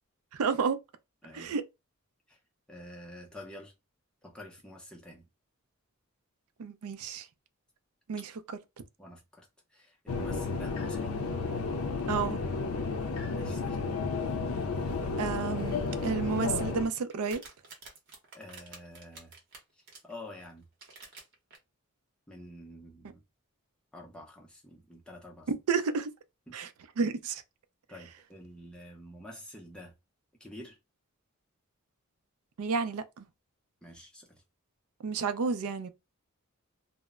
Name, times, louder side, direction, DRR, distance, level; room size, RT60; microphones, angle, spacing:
voice 1, 0.3-0.8 1.3-1.6 6.6-7.3 8.1-8.3 12.1-12.4 15.2-17.4 25.5-26.1 26.5-26.7 27.0-27.4 32.6-33.3 35.0-35.9, right 5 dB, 85° right, 0.4 m, -31 dB
voice 2, 2.7-3.7 4.2-5.3 9.0-11.2 13.3-13.8 18.3-19.3 19.8-20.7 22.3-23.2 23.9-25.5 26.5-26.6 27.9-29.9 30.4-30.8 33.8-34.4, left 1 dB, 5° left, 0.5 m, -48 dB
sound 1, 10.1-16.9, left 4 dB, 75° left, 0.4 m, -32 dB
sound 2, 16.3-20.1 20.6-21.6, right 3 dB, 50° right, 0.8 m, -50 dB
2.0 x 2.0 x 3.5 m
head